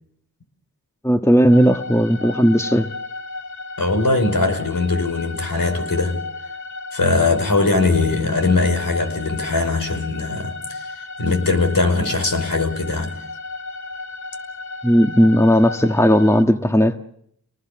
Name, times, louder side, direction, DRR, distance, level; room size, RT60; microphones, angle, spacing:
voice 1, 1.0-2.9 14.8-17.0, equal, 5° left, 1.6 m, -15 dB
sound 1, 1.5-16.4, left 3 dB, 50° left, 2.9 m, -34 dB
voice 2, 3.8-6.2 6.9-10.9 11.2-13.2, left 3 dB, 65° left, 5.3 m, -20 dB
30.0 x 19.5 x 7.6 m
cardioid pair, 50°, 37 cm